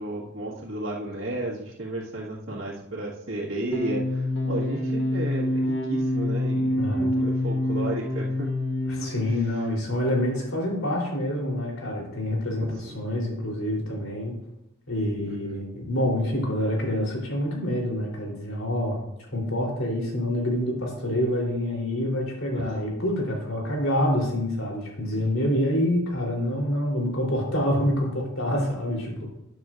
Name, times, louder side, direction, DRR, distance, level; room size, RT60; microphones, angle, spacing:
voice 1, 0.0-8.5 9.0-9.1 12.8-13.0 15.3-15.6 22.5-22.6 25.2-25.3, right 1 dB, 85° right, -7 dB, 1.9 m, -33 dB
sound 1, 3.7-9.4, left 1 dB, 60° left, 1.0 m, -26 dB
voice 2, 6.8-7.1 8.9-14.4 14.9-19.1 19.3-29.3, left 1 dB, 90° left, -1 dB, 3.8 m, -27 dB
13.0 x 9.3 x 2.6 m, 0.86 s
head